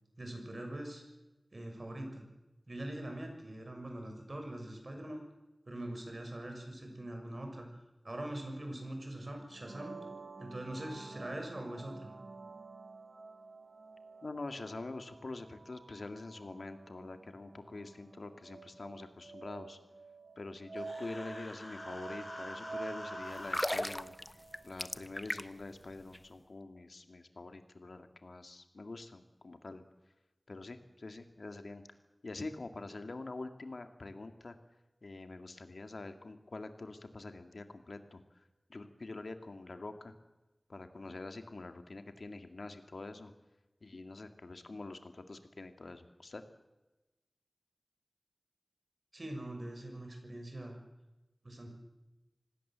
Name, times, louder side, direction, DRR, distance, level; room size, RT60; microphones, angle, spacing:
voice 1, 0.2-1.0 1.5-2.2 2.7-5.2 5.7-7.7 8.0-9.9 10.4-12.1 49.1-50.8 51.4-51.7, right 1 dB, 50° right, 3 dB, 6.6 m, -42 dB
sound 1, 9.5-25.1, right 3 dB, 80° right, 1.2 m, -49 dB
voice 2, 14.2-19.8 20.4-24.1 24.6-29.8 30.5-31.8 32.2-34.6 35.0-40.1 40.7-43.3 43.8-46.4, left 2 dB, 80° left, 7 dB, 2.2 m, -45 dB
Human voice, 20.8-23.6, left 1 dB, 35° left, 7.5 m, -46 dB
sound 2, 23.4-25.7 26.0-26.2, left 1 dB, 20° left, 0.9 m, -36 dB
26.0 x 18.5 x 7.6 m, 1.0 s
wide cardioid pair, 50°, 0 cm